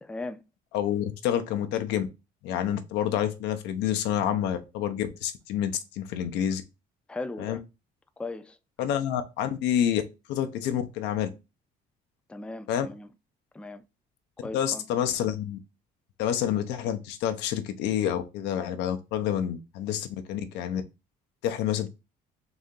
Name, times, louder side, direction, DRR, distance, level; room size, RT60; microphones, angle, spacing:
voice 1, 0.0-0.4 7.1-7.6 8.2-8.6 12.3-13.1 13.5-13.9 14.4-14.9, left 2 dB, 5° left, 0.4 m, -38 dB
voice 2, 0.7-2.1 2.4-6.6 7.4-7.6 8.8-10.0 10.3-11.3 12.7-12.9 14.5-15.6 16.2-20.8 21.4-21.9, left 10 dB, 90° left, 0.6 m, -28 dB
3.9 x 2.8 x 3.6 m
cardioid pair, 110°, 17 cm